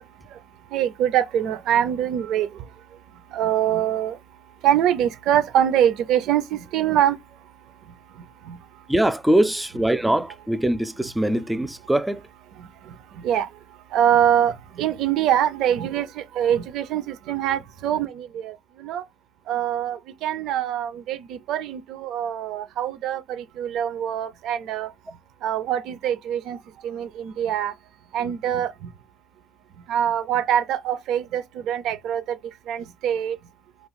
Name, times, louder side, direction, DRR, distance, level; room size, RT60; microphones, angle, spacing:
voice 1, 0.7-4.2 4.6-7.5 7.8-8.9 12.5-19.0 19.5-24.9 25.4-27.7 28.1-28.9 29.8-32.4 32.7-33.4, right 10 dB, 85° right, 0.5 m, -24 dB
voice 2, 8.9-12.2, right 1 dB, 10° right, 0.4 m, -22 dB
2.9 x 2.3 x 4.0 m
cardioid pair, 90°, 0 cm